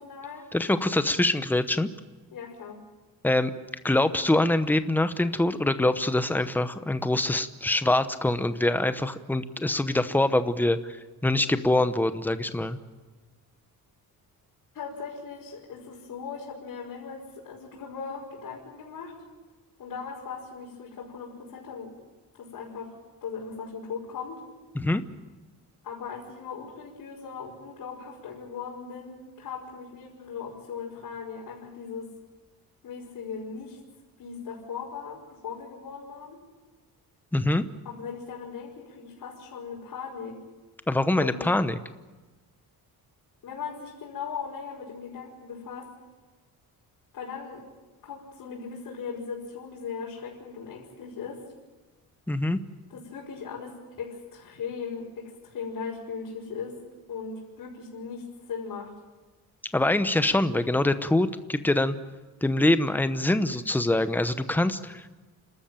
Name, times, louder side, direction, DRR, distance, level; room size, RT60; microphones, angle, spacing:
voice 1, 0.0-0.4 2.3-2.8 14.7-19.1 19.8-21.9 22.4-22.9 23.2-24.4 25.8-32.1 32.8-33.8 34.2-36.4 37.8-40.4 41.2-41.5 43.4-45.9 47.1-47.6 48.0-51.4 52.9-56.8 57.1-58.9, left 6 dB, 60° left, -6 dB, 5.4 m, -38 dB
voice 2, 0.5-1.9 3.2-3.5 3.8-11.0 11.2-12.8 24.8-25.0 37.3-37.6 40.9-41.8 52.3-52.6 59.7-62.0 62.4-65.1, left 1 dB, 5° left, 11 dB, 0.9 m, -24 dB
29.5 x 13.5 x 9.0 m, 1.3 s
cardioid pair, 165°, 38 cm